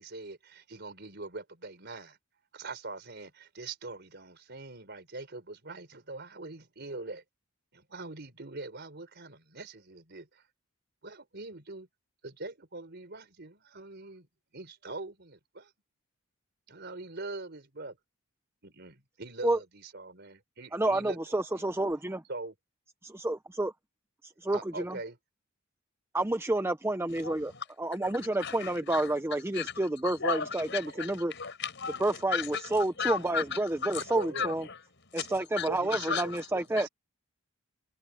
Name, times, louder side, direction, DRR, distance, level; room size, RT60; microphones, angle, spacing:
voice 1, 0.0-2.2 2.5-7.2 7.7-10.4 11.0-11.9 12.2-14.3 14.5-15.7 16.7-18.0 18.6-21.2 21.5-21.6 22.3-22.5 24.5-25.2 34.1-34.5 35.7-36.9, right 3 dB, 50° right, 4.3 m, -42 dB
voice 2, 20.7-22.2 23.0-23.7 24.2-25.0 26.1-27.5 27.8-31.3 32.0-34.6 35.1-36.9, right 2 dB, 10° right, 0.6 m, -29 dB
voice 3, 27.2-27.6 28.0-29.1 29.5-34.8 35.2-36.5 36.8-36.9, left 6 dB, 55° left, 6.4 m, -36 dB
head